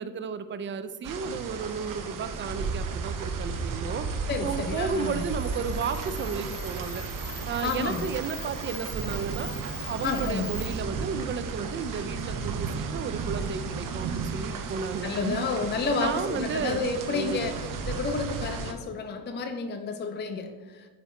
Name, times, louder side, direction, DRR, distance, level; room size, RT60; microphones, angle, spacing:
voice 1, 0.0-4.1 4.4-7.0 7.5-9.5 9.9-15.4 16.0-16.8 17.1-17.6, right 5 dB, 30° right, 12 dB, 0.4 m, -33 dB
sound 1, 1.0-18.7, right 5 dB, 50° right, 0.7 m, -34 dB
Camera, 3.7-10.7, left 6 dB, 60° left, 1.7 m, -43 dB
voice 2, 4.3-5.2 7.6-8.1 10.0-10.5 15.0-17.5 17.8-20.9, left 4 dB, 25° left, 6 dB, 0.5 m, -30 dB
7.0 x 3.2 x 4.2 m, 1.3 s
cardioid pair, 85°, 43 cm